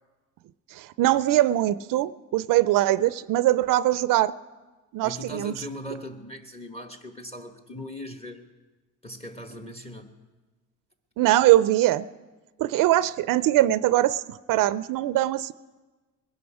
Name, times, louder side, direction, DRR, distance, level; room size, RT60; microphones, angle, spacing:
voice 1, 0.7-4.3 4.9-5.5 11.2-12.0 12.6-14.2 14.5-15.5, right 14 dB, 80° right, 16 dB, 0.5 m, -22 dB
voice 2, 5.0-8.4 9.0-10.1, left 1 dB, 20° left, 6 dB, 1.2 m, -39 dB
20.5 x 11.5 x 4.8 m, 1.2 s
cardioid pair, 100°, 32 cm